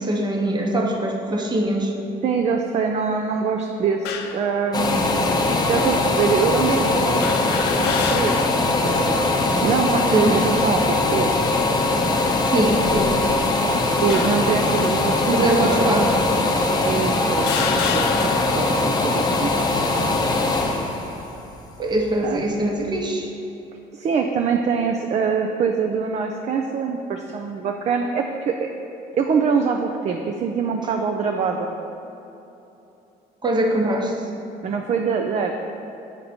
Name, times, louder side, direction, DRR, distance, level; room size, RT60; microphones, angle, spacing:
voice 1, 0.0-1.9 7.3-7.4 10.1-10.3 12.5-13.2 15.3-16.3 21.8-23.3 33.4-34.2, right 1 dB, 25° right, 1 dB, 0.9 m, -22 dB
voice 2, 2.2-8.6 8.8-11.3 13.9-16.1 16.8-17.5 17.9-19.5 22.2-22.6 23.9-28.7 29.2-31.7 34.6-35.6, right 5 dB, 40° right, 3 dB, 0.4 m, -24 dB
sound 1, 4.0-4.4 5.3-5.4 7.2-8.7 9.1-9.2 10.3-10.8 11.5-11.7 12.7-13.5 14.1-14.6 15.5-15.6 16.5-16.6 17.3-18.7, left 7 dB, 85° left, 0.6 m, -29 dB
sound 2, 4.7-22.4 22.9-23.0, left 2 dB, 25° left, 0.7 m, -21 dB
8.0 x 4.0 x 4.3 m, 3.0 s
cardioid pair, 110°, 17 cm